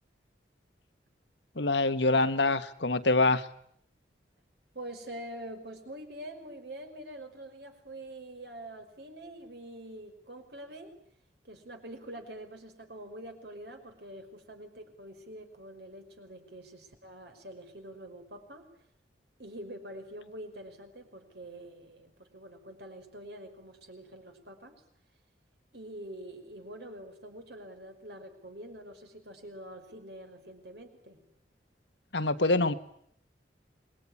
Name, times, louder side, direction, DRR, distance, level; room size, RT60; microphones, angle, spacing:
voice 1, 1.5-3.5 32.1-32.7, left 2 dB, 85° left, 10 dB, 1.6 m, -25 dB
voice 2, 4.7-10.9 11.4-18.6 19.4-24.7 25.7-31.2, right 1 dB, 65° right, 5 dB, 5.6 m, -45 dB
26.5 x 21.5 x 9.9 m, 0.68 s
head